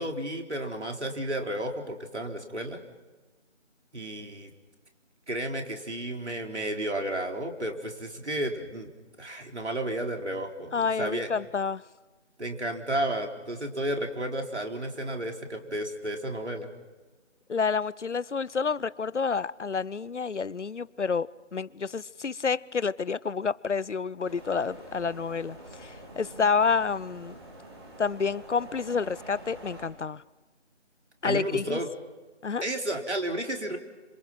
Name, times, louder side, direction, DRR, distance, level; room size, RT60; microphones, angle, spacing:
voice 1, 0.0-2.8 3.9-4.5 5.3-8.9 9.2-11.3 12.4-16.7 31.2-31.9 32.6-33.8, right 1 dB, 70° right, 4.1 m, -32 dB
voice 2, 10.7-11.8 17.5-27.3 28.0-30.2 31.2-31.8 32.4-32.6, left 5 dB, 75° left, 0.8 m, -29 dB
sound 1, 24.2-29.9, right 1 dB, 20° right, 3.5 m, -46 dB
28.5 x 27.0 x 6.0 m
figure-of-eight pair, 165°, 36 cm